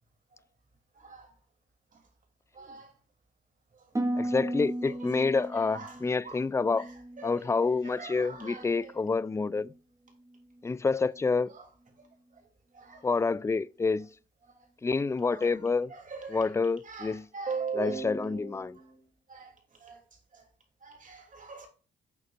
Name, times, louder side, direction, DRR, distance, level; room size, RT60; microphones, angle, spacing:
voice 1, 0.9-1.4 1.9-2.1 2.5-2.9 3.7-4.2 4.8-6.5 6.8-7.5 7.8-9.0 11.5-11.7 12.0-12.5 12.7-13.1 14.4-14.7 15.3-20.5 20.8-21.7, right 5 dB, 45° right, 3.2 m, -42 dB
Harp, 3.9-8.0 8.3-8.9 9.4-9.7, right 1 dB, 15° right, 1.7 m, -36 dB
voice 2, 4.1-6.9 7.2-9.7 10.6-11.5 13.0-14.1 14.8-15.9 16.3-17.2 17.8-18.7, left 4 dB, 15° left, 0.4 m, -28 dB
9.1 x 6.4 x 2.6 m
supercardioid pair, 65°, 19 cm